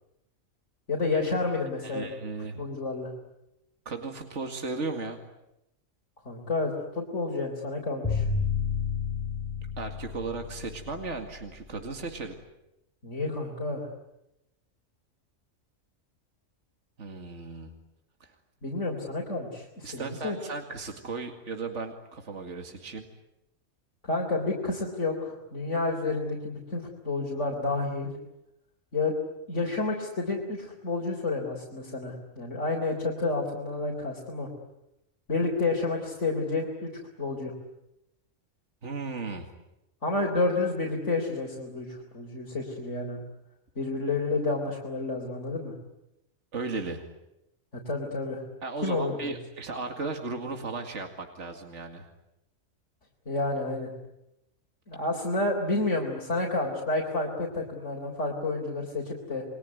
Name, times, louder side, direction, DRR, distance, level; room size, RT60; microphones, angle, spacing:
voice 1, 0.9-2.1 2.6-3.1 6.2-8.3 13.0-13.9 18.6-20.4 24.1-28.1 28.9-29.1 29.5-34.5 35.3-36.9 37.2-37.6 40.0-43.2 43.8-45.7 47.9-48.4 48.8-49.3 53.3-53.9 54.9-59.4, left 3 dB, 60° left, -2 dB, 4.2 m, -30 dB
voice 2, 1.8-2.6 3.9-5.2 9.8-12.3 17.0-17.7 18.2-18.3 19.8-23.0 38.8-39.5 46.5-47.0 48.6-52.1, right 3 dB, 60° right, 4 dB, 2.6 m, -36 dB
sound 1, 8.0-12.1, left 5 dB, 20° left, 3.6 m, -31 dB
29.0 x 21.5 x 9.6 m, 0.87 s
omnidirectional pair, 1.4 m